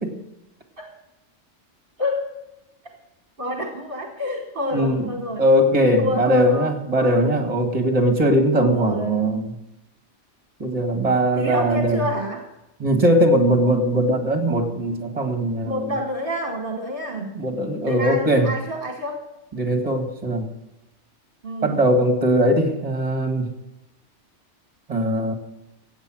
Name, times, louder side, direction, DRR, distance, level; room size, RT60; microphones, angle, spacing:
voice 1, 2.0-2.3 3.4-5.4 6.0-6.7 7.0-7.2 8.7-9.2 11.4-12.5 15.6-17.3 17.8-19.2 21.4-21.8, equal, 50° right, 2 dB, 1.6 m, -28 dB
voice 2, 4.7-5.1 5.4-9.5 10.6-12.0 12.8-15.9 17.3-18.5 19.5-20.5 21.6-23.5 24.9-25.3, equal, 30° right, 5 dB, 1.9 m, -20 dB
15.5 x 8.3 x 6.2 m, 0.93 s
omnidirectional pair, 1.2 m